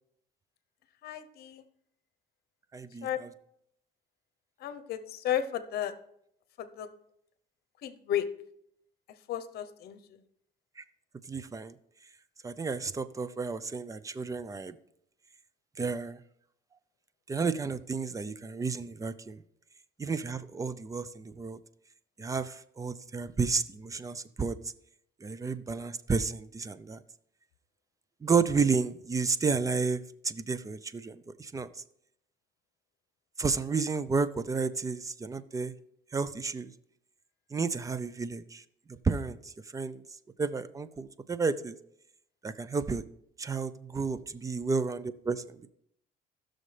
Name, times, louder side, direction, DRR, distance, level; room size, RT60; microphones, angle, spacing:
voice 1, 1.0-1.6 3.0-3.2 4.6-5.9 6.6-6.9 7.8-8.3 9.3-10.0, left 10 dB, 70° left, 12 dB, 0.8 m, -33 dB
voice 2, 2.7-3.1 10.8-10.9 11.3-11.7 12.4-14.7 15.8-16.2 17.3-19.4 20.0-21.6 22.2-24.6 25.2-27.0 28.2-31.8 33.4-35.7 36.1-36.7 37.5-38.6 38.9-40.0 40.4-41.8 42.4-43.0 43.4-45.7, right 4 dB, 20° right, 15 dB, 0.5 m, -31 dB
15.0 x 6.4 x 3.3 m, 0.73 s
cardioid pair, 110°, 17 cm